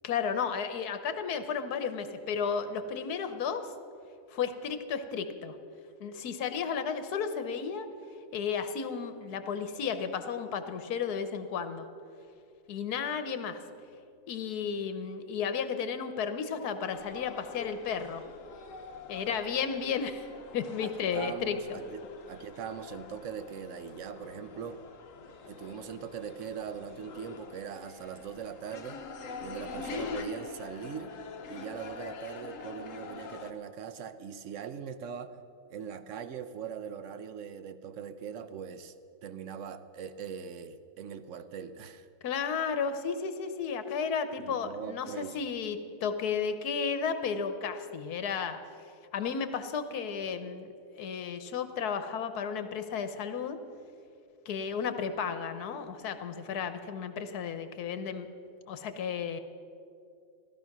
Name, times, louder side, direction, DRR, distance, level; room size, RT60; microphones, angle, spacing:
voice 1, 0.0-3.7 4.3-5.6 6.0-7.9 8.3-11.9 12.7-13.6 14.3-18.2 19.1-21.8 42.2-48.6 49.1-53.6 54.5-58.3 58.7-59.4, left 6 dB, 75° left, 10 dB, 1.4 m, -33 dB
sound 1, 16.9-33.5, left 5 dB, 60° left, 1.2 m, -45 dB
voice 2, 20.8-24.8 25.5-29.0 29.4-31.1 31.5-35.4 35.7-38.9 39.2-42.1 44.4-45.4, right 7 dB, 60° right, 11 dB, 0.9 m, -41 dB
16.0 x 12.5 x 6.0 m, 2.5 s
omnidirectional pair, 1.7 m